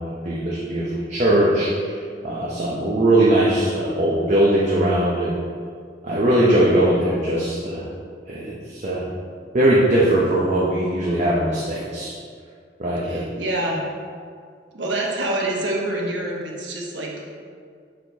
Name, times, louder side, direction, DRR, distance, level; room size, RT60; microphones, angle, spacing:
voice 1, 0.0-5.4 6.0-7.9 8.3-9.0 9.5-12.1 12.8-13.2, right 1 dB, 40° right, -6 dB, 0.7 m, -20 dB
voice 2, 13.0-13.8 14.7-17.2, right 1 dB, 85° right, -2 dB, 1.1 m, -26 dB
6.3 x 4.4 x 3.4 m, 2.1 s
head